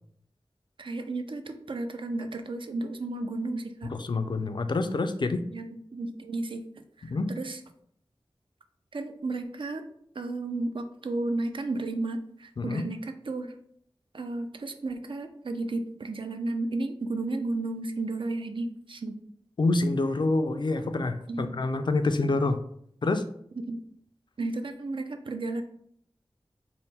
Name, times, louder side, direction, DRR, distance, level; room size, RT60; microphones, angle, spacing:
voice 1, 0.8-3.9 5.5-7.6 8.9-9.8 10.1-13.5 14.1-19.1 21.3-21.6 23.6-23.8 24.4-25.6, right 2 dB, 65° right, 7 dB, 0.4 m, -33 dB
voice 2, 3.9-5.4 7.0-7.3 12.6-12.8 19.6-22.6 23.0-23.2, left 2 dB, 55° left, 9 dB, 0.3 m, -27 dB
3.5 x 2.1 x 4.1 m, 0.68 s
wide cardioid pair, 50°, 9 cm